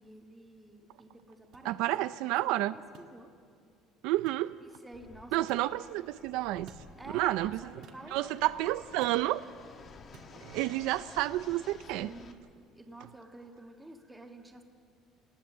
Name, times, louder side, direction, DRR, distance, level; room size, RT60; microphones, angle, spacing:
voice 1, 0.0-1.8 2.3-3.4 4.6-5.5 7.0-8.3 11.9-12.4 12.7-14.6, right 1 dB, 5° right, 3 dB, 1.6 m, -50 dB
sound 1, 1.5-1.7 2.9-3.1 4.3-4.5 5.5-5.7 6.7-6.9 7.8-8.1 9.0-9.2 10.1-10.3, right 6 dB, 50° right, 1.8 m, -54 dB
voice 2, 1.6-2.8 4.0-4.6 5.3-6.7 7.1-7.6 8.1-9.4 10.4-12.1, right 16 dB, 75° right, 13 dB, 0.5 m, -30 dB
Fixed-wing aircraft airplane, 4.9-12.3, left 5 dB, 30° left, 1.4 m, -53 dB
27.5 x 20.5 x 7.5 m, 2.2 s
cardioid pair, 175°, 0 cm